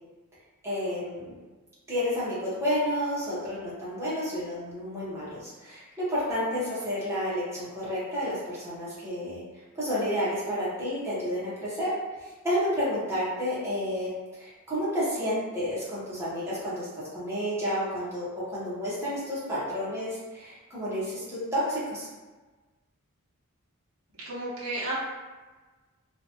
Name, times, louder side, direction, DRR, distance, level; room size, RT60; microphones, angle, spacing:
voice 1, 0.6-1.4 1.9-9.4 9.7-11.9 12.2-22.1, equal, 10° right, -10 dB, 1.0 m, -30 dB
voice 2, 24.2-25.0, right 1 dB, 75° right, -8 dB, 0.8 m, -32 dB
2.9 x 2.4 x 2.9 m, 1.3 s
head